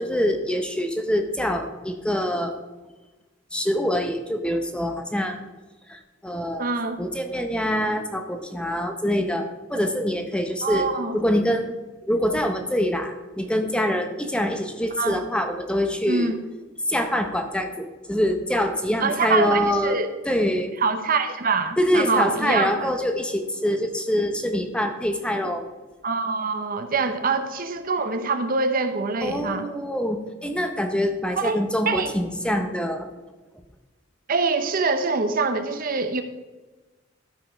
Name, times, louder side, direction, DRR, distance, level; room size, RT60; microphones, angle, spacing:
voice 1, 0.0-2.5 3.5-5.4 5.9-6.7 7.0-10.9 11.1-11.7 12.0-16.3 16.9-20.0 20.2-20.7 21.8-25.6 29.2-33.1, equal, 5° left, 5 dB, 0.7 m, -25 dB
voice 2, 6.6-7.0 10.6-11.2 15.0-15.2 16.1-16.4 19.0-20.1 20.8-22.9 26.0-29.7 31.4-32.1 34.3-36.2, right 4 dB, 45° right, 8 dB, 0.7 m, -24 dB
12.5 x 5.1 x 5.0 m, 1.2 s
head